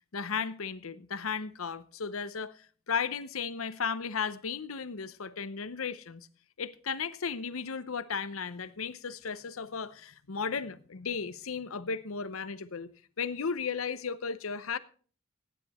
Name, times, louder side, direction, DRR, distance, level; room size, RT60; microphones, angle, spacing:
voice 1, 0.1-6.3 6.6-12.9 13.2-14.8, left 6 dB, 85° left, 0.8 m, -35 dB
15.0 x 9.9 x 4.3 m
head